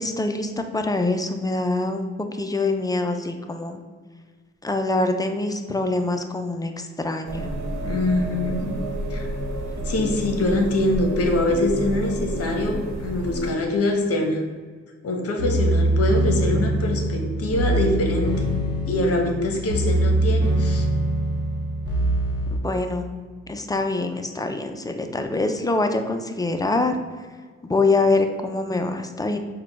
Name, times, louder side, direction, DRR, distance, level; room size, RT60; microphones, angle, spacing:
voice 1, 0.0-3.8 4.6-7.5 22.5-23.1 23.5-27.0 27.6-29.4, left 2 dB, 15° left, 6 dB, 0.4 m, -24 dB
sound 1, 7.2-13.5, right 1 dB, 65° right, 1.1 m, -30 dB
voice 2, 7.8-8.8 9.1-9.3 9.8-14.4 15.0-18.4 18.9-20.9, left 2 dB, 50° left, 2 dB, 0.9 m, -24 dB
sound 2, 15.4-22.6, right 1 dB, 15° right, 1.3 m, -23 dB
4.8 x 2.3 x 4.5 m, 1.5 s
cardioid pair, 90°, 30 cm